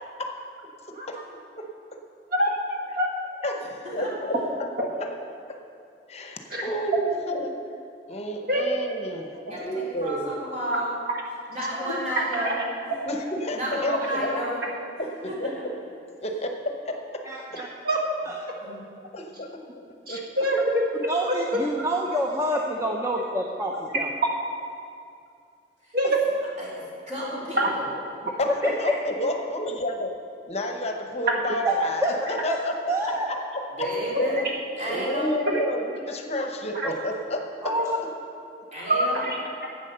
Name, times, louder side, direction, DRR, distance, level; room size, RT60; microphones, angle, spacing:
voice 1, 2.3-3.1 6.5-6.6 8.5-8.6 11.8-11.9 12.3-12.5 17.8-18.0 20.1-20.8 21.2-21.3 25.9-26.1 27.6-27.7 31.3-31.4 36.7-36.9 38.9-39.4, equal, 60° right, -1 dB, 1.5 m, -25 dB
voice 2, 3.4-4.4 4.8-5.1 6.1-7.5 8.1-10.3 13.1-14.4 15.0-15.7 16.2-17.2 17.5-17.6 19.1-19.5 19.7-19.8 20.1-20.5 28.4-30.1 30.5-33.9 34.2-34.3 34.8-37.7, left 1 dB, 40° left, 4 dB, 0.9 m, -30 dB
voice 3, 9.5-10.9 11.5-12.6 12.9-13.0 13.5-14.6 15.0-15.6 18.6-18.8 26.6-27.9 33.8-34.4 34.8-35.3 38.7-39.3, equal, 45° right, -6 dB, 3.3 m, -32 dB
voice 4, 17.2-17.7 18.3-18.4 21.1-24.1 28.6-28.7 31.6-31.7 32.0-32.1 32.5-32.6 32.9-33.3 36.8-36.9 37.6-38.0, right 1 dB, 15° right, -1 dB, 0.7 m, -27 dB
10.5 x 8.3 x 6.7 m, 2.4 s
head